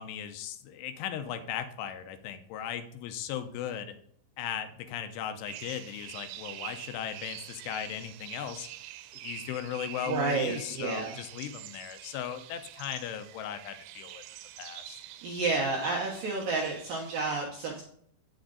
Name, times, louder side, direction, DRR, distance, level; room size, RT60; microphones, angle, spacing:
voice 1, 0.0-4.0 4.4-8.7 9.2-14.2 14.6-15.0, left 9 dB, 85° left, 8 dB, 3.0 m, -37 dB
sound 1, 5.5-17.3, right 14 dB, 90° right, 3.2 m, -46 dB
voice 2, 10.1-11.1 15.2-17.8, right 3 dB, 70° right, -2 dB, 2.1 m, -30 dB
8.7 x 7.2 x 3.9 m, 0.63 s
omnidirectional pair, 5.7 m